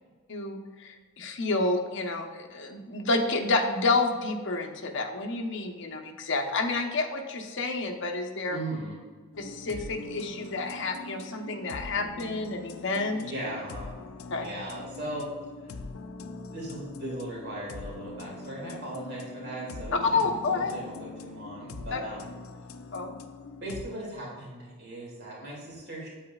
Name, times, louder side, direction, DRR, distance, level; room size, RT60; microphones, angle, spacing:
voice 1, 0.3-8.6 9.4-13.2 14.3-14.5 20.0-20.7 21.9-22.0 22.9-23.1, left 3 dB, 65° left, 3 dB, 0.9 m, -29 dB
voice 2, 8.5-9.0 13.1-13.9 14.4-15.3 15.6-15.8 16.5-22.3 23.6-26.1, right 1 dB, 55° right, -4 dB, 2.2 m, -38 dB
sound 1, 9.3-23.8, left 3 dB, 90° left, 0.5 m, -43 dB
8.4 x 8.1 x 2.4 m, 1.5 s
head